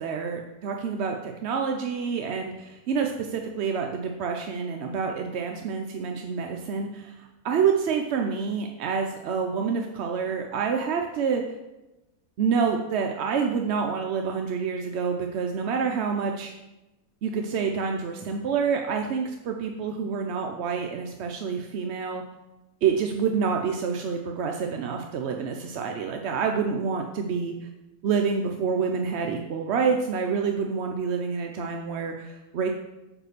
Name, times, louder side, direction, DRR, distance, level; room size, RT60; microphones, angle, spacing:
voice 1, 0.0-7.1 7.4-11.4 12.4-16.5 17.2-22.2 22.8-27.5 28.0-32.7, right 6 dB, 65° right, 3 dB, 0.7 m, -27 dB
5.3 x 4.9 x 6.4 m, 0.99 s
omnidirectional pair, 1.6 m